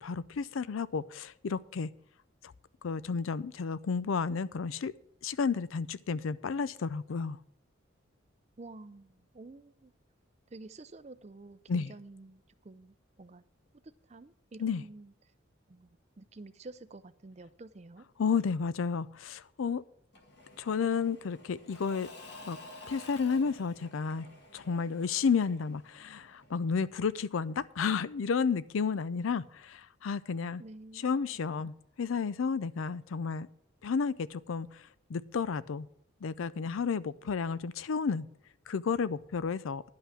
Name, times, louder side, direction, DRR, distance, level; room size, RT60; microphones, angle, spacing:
voice 1, 0.0-1.9 2.8-4.9 5.2-7.4 11.7-11.9 14.6-14.8 18.2-19.8 20.6-22.1 22.5-22.6 22.9-24.3 24.5-30.6 31.0-33.5 33.8-34.8 35.1-35.9 36.2-38.3 38.7-39.8, left 5 dB, 80° left, 0.4 m, -32 dB
voice 2, 8.6-9.9 10.5-13.5 13.8-15.1 15.7-18.1 30.6-31.7, right 2 dB, 35° right, 0.4 m, -50 dB
Engine / Mechanisms / Drill, 20.1-26.8, left 2 dB, 55° left, 1.9 m, -52 dB
11.0 x 5.7 x 7.5 m
head